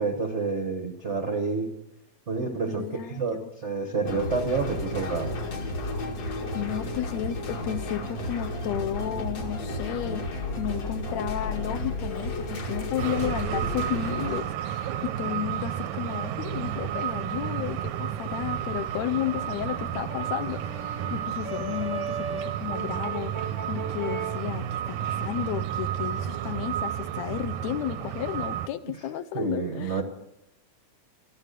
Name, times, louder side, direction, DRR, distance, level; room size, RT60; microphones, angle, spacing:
voice 1, 0.0-1.7 2.3-5.4 28.8-28.9 29.3-30.0, right 4 dB, 75° right, 4 dB, 0.6 m, -29 dB
voice 2, 2.7-3.5 6.2-30.0, left 11 dB, 75° left, 11 dB, 1.9 m, -33 dB
sound 1, 4.1-14.4, left 1 dB, 60° left, 3.3 m, -32 dB
sound 2, 13.0-28.7, right 10 dB, 90° right, 2.2 m, -32 dB
Brass instrument, 19.0-24.5, right 4 dB, 55° right, 0.9 m, -37 dB
14.0 x 13.0 x 6.6 m, 0.87 s
omnidirectional pair, 3.4 m